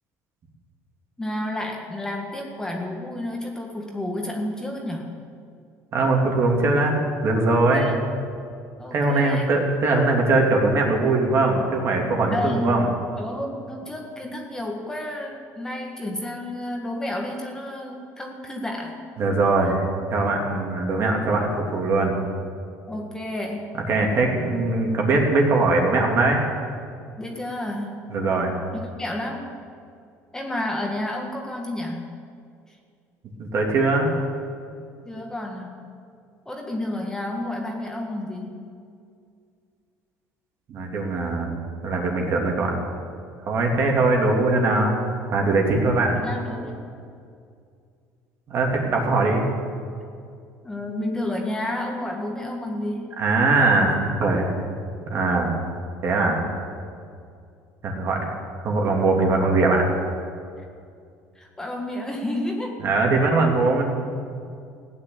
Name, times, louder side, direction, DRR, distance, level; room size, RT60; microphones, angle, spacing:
voice 1, 1.2-5.1 7.7-8.0 8.8-9.5 12.3-12.9 13.1-19.0 22.9-23.7 27.2-28.1 28.7-29.5 30.3-32.0 32.7-32.8 35.1-35.9 36.5-38.6 46.1-46.8 50.6-53.2 61.4-62.8, left 1 dB, 10° left, 1 dB, 1.8 m, -31 dB
voice 2, 5.9-7.9 8.9-12.9 19.2-19.8 20.1-22.2 23.9-26.4 28.1-28.5 33.4-34.1 40.7-41.6 41.8-42.7 43.5-45.0 45.3-46.2 48.5-49.5 53.2-54.5 55.1-55.5 56.0-56.4 57.8-58.3 58.6-59.9 62.8-63.8, right 3 dB, 45° right, 0 dB, 3.1 m, -21 dB
16.0 x 9.6 x 8.7 m, 2.3 s
cardioid pair, 125°, 6 cm